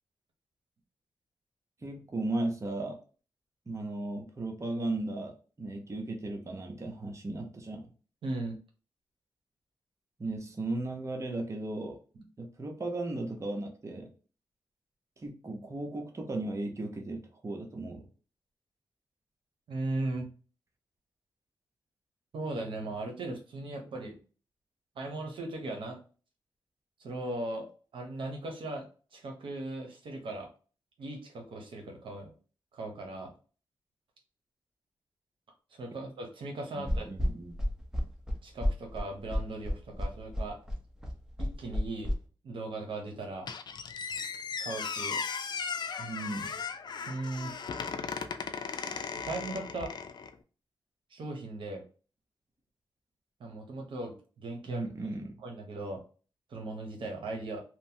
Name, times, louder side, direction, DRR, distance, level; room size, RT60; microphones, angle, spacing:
voice 1, 1.8-3.0 3.7-7.9 10.2-12.0 12.4-14.1 15.2-18.1 36.8-37.5 46.0-46.6 54.7-55.2, right 2 dB, 35° right, 2 dB, 0.8 m, -36 dB
voice 2, 8.2-8.5 12.1-12.3 19.7-20.3 22.3-24.2 25.0-26.0 27.0-27.7 27.9-28.9 29.1-30.5 31.0-32.3 32.7-33.3 35.7-37.1 38.4-40.6 41.4-42.1 42.4-43.5 44.6-45.2 47.1-47.5 49.2-49.9 51.1-51.8 53.4-54.8 55.4-56.0 56.5-57.6, right 2 dB, 80° right, 3 dB, 0.8 m, -38 dB
sound 1, 36.9-42.1, equal, 5° right, 0.8 m, -30 dB
Squeak, 43.5-50.3, left 5 dB, 60° left, 0.4 m, -37 dB
2.9 x 2.1 x 2.7 m, 0.37 s
cardioid pair, 75°, 9 cm